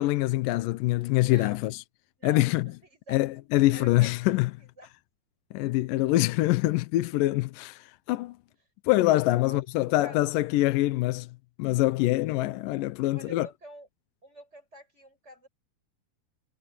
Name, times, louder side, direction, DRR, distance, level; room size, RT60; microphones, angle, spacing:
voice 1, 0.0-1.8 2.2-2.7 3.1-4.5 5.5-8.4 8.9-11.3 11.6-13.5, left 17 dB, 80° left, 2.3 m, -25 dB
voice 2, 1.2-1.8 2.2-3.2 3.5-4.9 9.4-9.6 10.0-10.3 13.1-13.9 14.2-15.5, right 1 dB, 20° right, 7.0 m, -48 dB
omnidirectional pair, 3.9 m